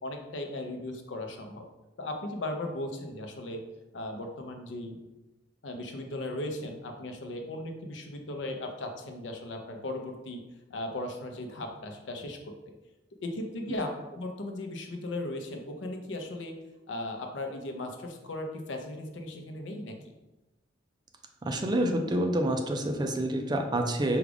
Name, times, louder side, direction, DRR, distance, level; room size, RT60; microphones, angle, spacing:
voice 1, 0.0-1.6 2.0-3.6 3.9-5.0 5.6-10.4 10.7-12.7 13.2-16.6 16.9-20.0, left 1 dB, 75° left, 4 dB, 0.6 m, -37 dB
voice 2, 21.5-24.2, right 1 dB, 25° right, 4 dB, 0.4 m, -27 dB
4.8 x 2.4 x 3.4 m, 1.0 s
head